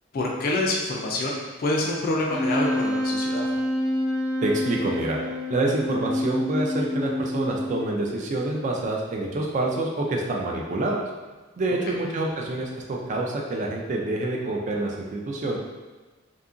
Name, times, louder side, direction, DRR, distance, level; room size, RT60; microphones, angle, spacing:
voice 1, 0.1-3.5 11.9-12.0, left 2 dB, 45° left, -1 dB, 0.3 m, -27 dB
Wind instrument woodwind instrument, 2.3-8.0, left 1 dB, 60° right, 1.0 m, -27 dB
voice 2, 4.4-5.2 5.5-11.0 11.6-15.6, right 2 dB, 35° right, -1 dB, 0.3 m, -27 dB
2.7 x 2.4 x 2.5 m, 1.2 s
head